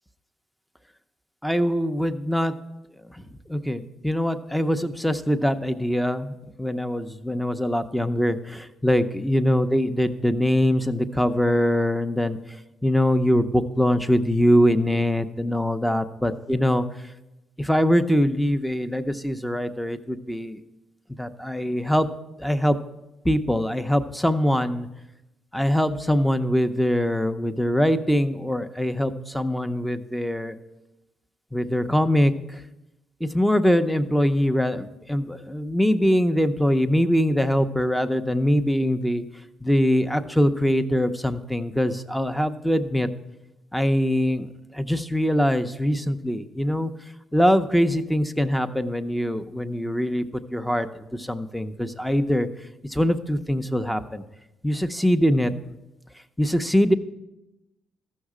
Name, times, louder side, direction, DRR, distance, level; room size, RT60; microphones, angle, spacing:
voice 1, 1.4-2.5 3.1-3.2 3.5-12.4 12.8-16.8 17.6-20.6 21.2-22.1 22.4-22.8 23.2-24.9 25.5-30.6 31.5-32.6 33.2-39.2 39.6-43.1 43.7-46.9 47.3-50.2 50.5-52.5 52.8-54.2 54.6-55.5 56.4-56.9, equal, 5° left, 9 dB, 0.6 m, -23 dB
14.0 x 6.4 x 4.9 m, 0.94 s
cardioid pair, 90°, 0 cm